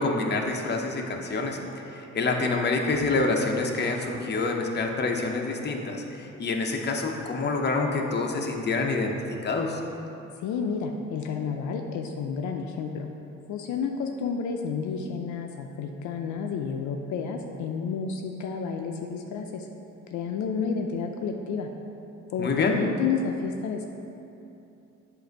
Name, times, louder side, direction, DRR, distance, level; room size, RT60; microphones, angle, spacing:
voice 1, 0.0-9.8 22.4-22.8, left 3 dB, 35° left, 2 dB, 0.7 m, -27 dB
voice 2, 10.4-13.1 13.5-19.7 20.1-21.7 22.3-23.8, left 5 dB, 75° left, 3 dB, 0.5 m, -30 dB
7.6 x 2.6 x 5.2 m, 2.8 s
cardioid pair, 90°, 30 cm